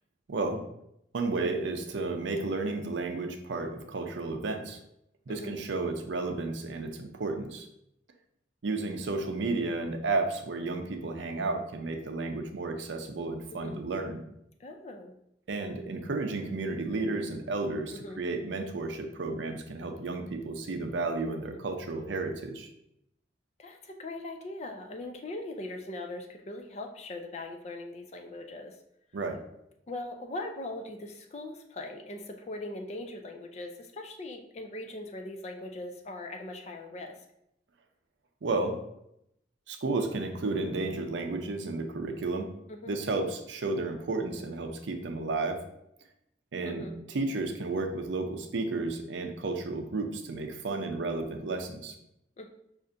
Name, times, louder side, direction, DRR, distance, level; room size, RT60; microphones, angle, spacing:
voice 1, 0.3-0.6 1.1-4.8 5.3-7.7 8.6-14.2 15.5-22.7 29.1-29.4 38.4-38.8 39.7-42.5 42.9-45.6 46.5-51.9, right 3 dB, 75° right, 5 dB, 0.5 m, -32 dB
voice 2, 5.3-5.6 13.5-13.8 14.6-15.1 17.9-18.2 21.3-21.6 23.6-28.8 29.9-37.1 42.7-43.0 46.6-47.0 52.4-52.5, left 2 dB, 35° left, 4 dB, 0.4 m, -40 dB
5.4 x 2.5 x 2.5 m, 0.79 s
head